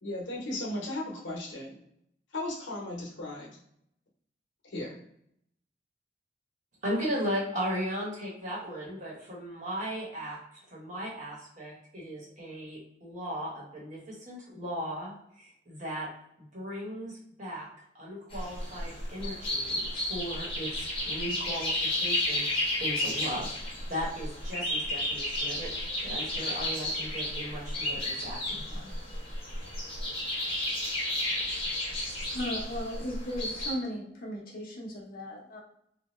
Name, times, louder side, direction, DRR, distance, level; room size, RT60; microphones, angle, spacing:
voice 1, 0.0-1.8 2.3-3.6 4.6-5.0, left 1 dB, 80° left, -2 dB, 0.9 m, -36 dB
voice 2, 6.8-10.4 10.7-16.1 16.4-17.7 17.9-29.0, equal, 40° right, -5 dB, 1.1 m, -37 dB
sound 1, 18.3-33.7, left 1 dB, 30° left, 1.1 m, -32 dB
voice 3, 32.3-35.6, equal, 50° left, -2 dB, 0.8 m, -36 dB
2.7 x 2.1 x 3.1 m, 0.72 s
head